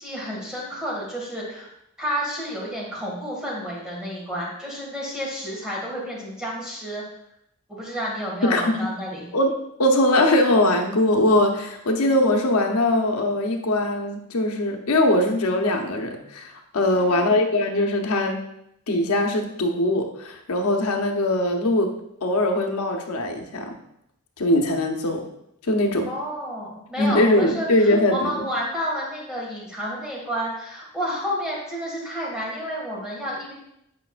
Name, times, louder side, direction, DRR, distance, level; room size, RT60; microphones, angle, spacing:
voice 1, 0.0-1.7 2.0-7.0 7.7-9.3 16.9-17.5 26.1-33.5, equal, 5° right, -5 dB, 1.9 m, -30 dB
voice 2, 8.4-8.9 9.3-9.5 9.8-18.4 18.9-21.9 22.2-23.7 24.4-25.2 25.6-26.1 27.0-28.4, left 1 dB, 90° left, 3 dB, 0.9 m, -21 dB
8.4 x 5.3 x 2.5 m, 0.77 s
head